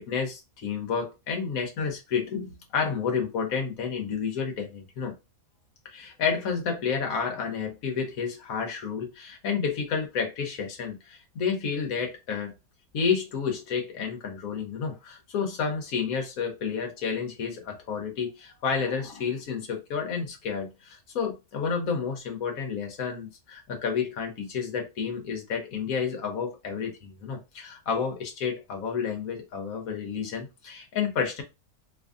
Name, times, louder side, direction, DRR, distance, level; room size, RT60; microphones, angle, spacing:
voice 1, 0.0-5.1 5.8-12.5 12.9-31.4, left 6 dB, 70° left, 1.3 m, -30 dB
2.9 x 2.6 x 3.5 m
omnidirectional pair, 1.6 m